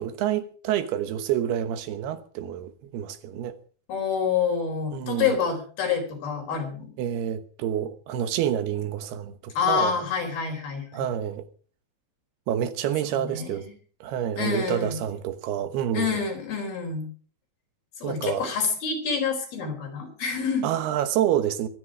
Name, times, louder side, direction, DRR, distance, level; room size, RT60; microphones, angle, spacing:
voice 1, 0.0-3.6 4.9-5.4 7.0-9.9 10.9-11.5 12.5-13.7 14.0-16.2 18.0-18.5 20.6-21.7, right 10 dB, 80° right, 3.1 m, -28 dB
voice 2, 3.9-6.9 9.6-11.1 13.1-13.6 14.4-15.0 15.9-17.1 18.0-20.7, left 6 dB, 70° left, 6.1 m, -27 dB
23.0 x 9.9 x 4.9 m
omnidirectional pair, 4.6 m